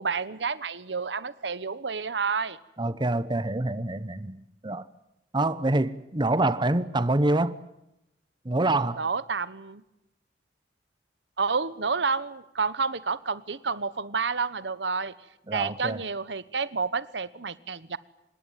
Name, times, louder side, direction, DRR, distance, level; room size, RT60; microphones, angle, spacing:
voice 1, 0.0-2.6 9.0-9.8 11.4-15.1 15.5-18.0, right 5 dB, 85° right, 1.2 m, -29 dB
voice 2, 2.8-4.8 5.3-7.5 8.4-9.0 15.5-16.0, right 2 dB, 25° right, 1.0 m, -26 dB
25.5 x 21.0 x 9.3 m
head